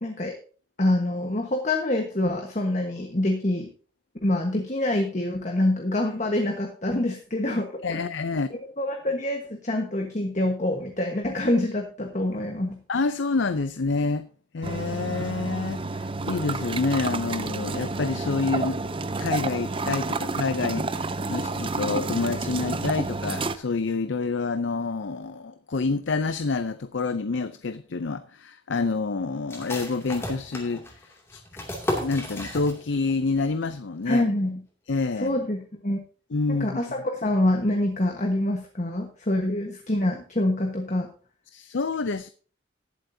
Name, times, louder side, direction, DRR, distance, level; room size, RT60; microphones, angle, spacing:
voice 1, 0.0-0.3 0.8-3.7 4.2-8.1 8.5-12.8 34.1-34.6 35.2-36.0 36.5-41.1, left 1 dB, 40° left, 1.3 m, -26 dB
voice 2, 7.8-8.5 12.9-14.3 14.5-18.8 19.2-31.4 32.0-34.3 34.9-35.4 36.3-36.8 41.5-42.3, left 4 dB, 80° left, 0.6 m, -28 dB
sound 1, 14.6-23.6, right 3 dB, 30° right, 0.6 m, -30 dB
sound 2, 29.5-33.1 33.4-33.5 33.9-34.4, left 1 dB, 15° left, 2.5 m, -34 dB
19.5 x 7.8 x 2.8 m
head